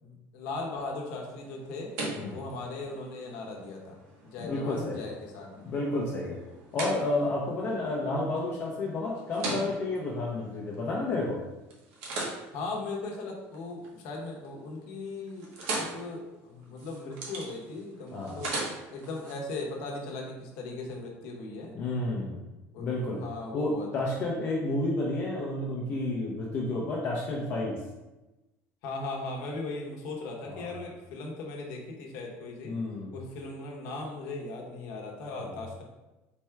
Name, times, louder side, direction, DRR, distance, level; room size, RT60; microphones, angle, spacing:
voice 1, 0.0-4.0 4.2-5.6 12.5-15.5 15.8-18.5 18.9-21.7 22.7-22.9 23.1-23.9 28.8-32.7 33.1-35.8, left 3 dB, 65° left, -1 dB, 0.9 m, -38 dB
sound 1, 1.3-11.3 11.7-14.0 14.3-14.8 15.1-19.3, right 2 dB, 75° right, 1.0 m, -40 dB
voice 2, 4.4-5.0 5.6-6.4 6.7-11.4 18.1-18.5 21.7-22.4 22.8-23.2 23.5-27.8 30.4-30.7 32.6-33.2 35.4-35.6, left 2 dB, 35° left, -3 dB, 0.6 m, -31 dB
4.2 x 2.3 x 4.4 m, 1.1 s
cardioid pair, 175°, 6 cm